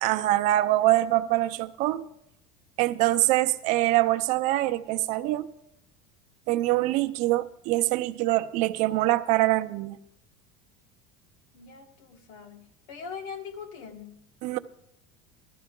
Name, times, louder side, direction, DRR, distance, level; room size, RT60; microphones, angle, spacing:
voice 1, 0.0-2.0 2.8-5.5 6.5-10.0 14.4-14.6, right 16 dB, 45° right, 0.6 m, -24 dB
voice 2, 11.5-14.3, left 6 dB, 75° left, 1.6 m, -42 dB
15.5 x 12.5 x 3.7 m
cardioid pair, 165°, 17 cm